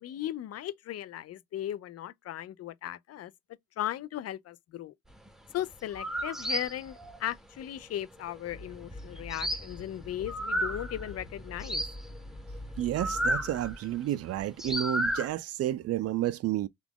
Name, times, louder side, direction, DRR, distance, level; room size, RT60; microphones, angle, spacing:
voice 1, 0.0-3.3 3.8-4.9 5.5-11.8, left 12 dB, 55° left, 0.4 m, -37 dB
sound 1, 5.3-5.4 5.7-11.2 11.5-13.9 14.4-15.3, equal, ahead, 0.6 m, -33 dB
sound 2, 8.5-13.7, left 1 dB, 25° left, 1.7 m, -45 dB
voice 2, 12.8-16.7, right 13 dB, 55° right, 0.4 m, -31 dB
3.0 x 2.4 x 3.4 m
cardioid pair, 90°, 30 cm